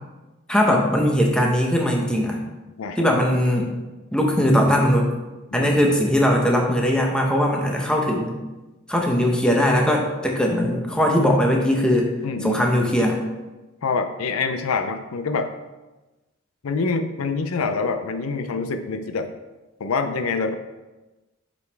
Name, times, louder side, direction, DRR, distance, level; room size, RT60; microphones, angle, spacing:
voice 1, 0.5-2.4 3.0-3.7 4.1-5.1 5.5-8.3 8.9-12.1 12.4-13.2, equal, 5° left, 0 dB, 0.9 m, -20 dB
voice 2, 12.2-12.6 13.8-15.5 16.6-19.3 19.8-20.5, left 4 dB, 80° left, 8 dB, 0.5 m, -25 dB
7.8 x 5.2 x 3.4 m, 1.1 s
head